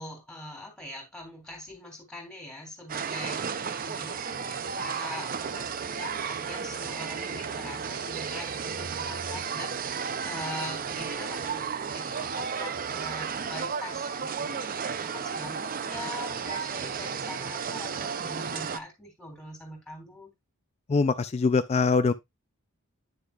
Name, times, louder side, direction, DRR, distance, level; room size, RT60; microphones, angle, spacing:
voice 1, 0.0-14.7 15.0-20.3, left 1 dB, 5° left, 3.4 m, -42 dB
sound 1, 2.9-18.8, right 6 dB, 40° right, 0.5 m, -33 dB
voice 2, 20.9-22.1, left 4 dB, 30° left, 0.3 m, -23 dB
9.5 x 6.8 x 2.4 m
head